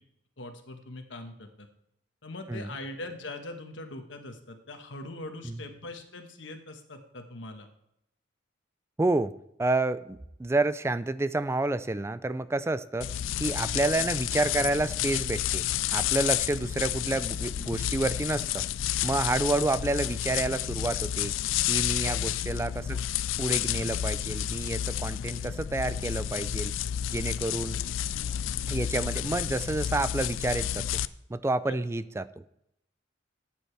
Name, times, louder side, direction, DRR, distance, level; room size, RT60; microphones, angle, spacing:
voice 1, 0.4-1.7 2.2-7.7 22.0-22.1 31.7-31.8, left 2 dB, 70° left, 6 dB, 1.3 m, -41 dB
voice 2, 9.0-9.3 9.6-13.1 13.4-15.6 15.9-18.6 19.0-21.3 21.7-23.0 23.4-26.7 27.1-27.8 28.7-30.9 31.3-32.4, right 2 dB, 15° right, 15 dB, 0.3 m, -29 dB
sound 1, 13.0-31.1, left 11 dB, 85° left, 0.4 m, -30 dB
13.5 x 9.1 x 3.3 m, 0.79 s
head